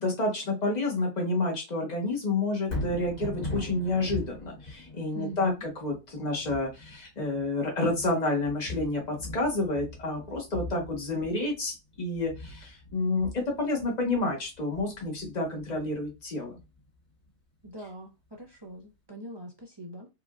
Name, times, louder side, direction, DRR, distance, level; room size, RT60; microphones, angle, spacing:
voice 1, 0.0-16.6, left 2 dB, 30° left, 1.1 m, -29 dB
Thunder, 2.7-16.8 17.3-17.4, left 2 dB, 65° left, 2.3 m, -41 dB
voice 2, 5.1-5.6 17.6-20.1, right 2 dB, 40° right, 0.3 m, -42 dB
4.6 x 2.5 x 2.4 m
omnidirectional pair, 1.5 m